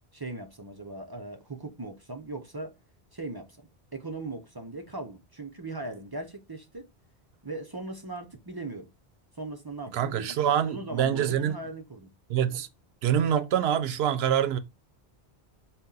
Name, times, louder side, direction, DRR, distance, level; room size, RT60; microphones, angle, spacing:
voice 1, 0.1-2.7 3.1-6.8 7.4-8.9 9.4-10.4 10.6-12.1, right 2 dB, 30° right, 0.5 m, -39 dB
voice 2, 9.9-11.6 12.3-12.7 13.0-14.6, right 9 dB, 80° right, 0.8 m, -25 dB
4.2 x 2.1 x 3.8 m
omnidirectional pair, 1.0 m